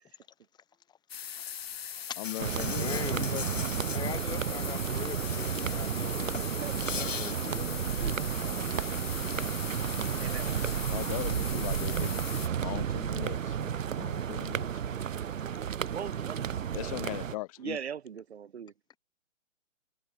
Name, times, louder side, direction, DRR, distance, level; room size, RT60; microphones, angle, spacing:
sound 1, 1.1-12.5, left 9 dB, 50° left, 3.0 m, -40 dB
Insect, 2.2-4.0 5.1-5.9 6.2-7.3, left 6 dB, 75° left, 2.4 m, -39 dB
voice 1, 2.2-3.4 9.3-9.5 10.9-12.2 12.6-15.0 16.7-17.8, left 20 dB, 25° left, 2.6 m, -39 dB
sound 2, 2.4-17.4, right 8 dB, 80° right, 0.6 m, -32 dB
voice 2, 2.8-3.3 3.9-6.4 6.9-8.2, left 9 dB, 10° left, 2.6 m, -41 dB
voice 3, 10.2-10.5 15.9-17.0 17.6-18.7, right 8 dB, 55° right, 3.0 m, -40 dB
figure-of-eight pair, 145°, 38 cm